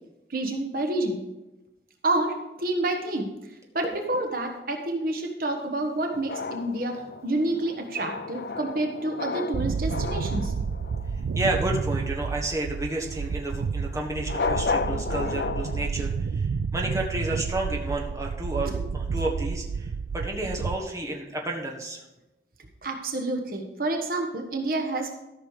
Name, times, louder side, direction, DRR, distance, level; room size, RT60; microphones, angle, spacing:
voice 1, 0.3-1.2 2.0-10.5 18.7-18.8 22.8-25.1, right 2 dB, 50° right, 3 dB, 1.2 m, -29 dB
sound 1, 6.1-11.9 14.2-15.9, left 4 dB, 55° left, 0.4 m, -33 dB
sound 2, 9.5-20.8, right 5 dB, 80° right, 0.3 m, -30 dB
voice 2, 11.4-18.7 18.9-19.9 20.1-22.0, right 1 dB, 15° right, -1 dB, 1.4 m, -31 dB
13.5 x 6.2 x 4.9 m, 0.97 s
head